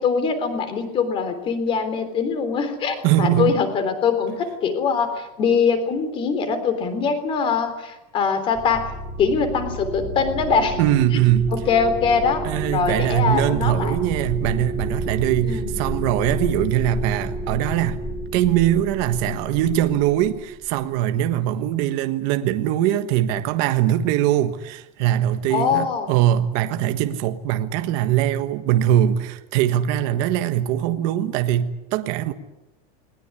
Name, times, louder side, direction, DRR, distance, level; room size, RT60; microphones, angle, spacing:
voice 1, 0.0-8.9 9.2-10.8 11.5-12.4 12.7-14.0 15.4-15.8 16.3-16.5 25.5-26.1, left 5 dB, 25° left, 3.5 m, -22 dB
voice 2, 3.0-3.6 10.8-11.6 12.4-18.0 18.3-32.3, right 11 dB, 45° right, 1.4 m, -21 dB
sound 1, 8.5-20.8, right 1 dB, 10° right, 3.0 m, -30 dB
21.0 x 20.0 x 9.8 m
supercardioid pair, 175°, 20 cm